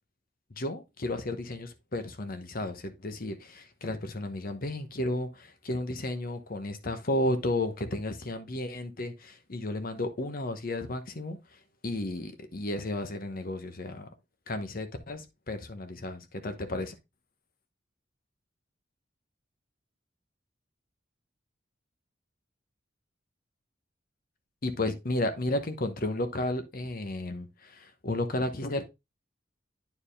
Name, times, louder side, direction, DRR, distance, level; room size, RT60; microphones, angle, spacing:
voice 1, 0.5-11.4 11.8-14.1 14.5-16.9 24.6-28.8, left 1 dB, 50° left, 1.0 m, -33 dB
9.4 x 4.6 x 3.3 m
head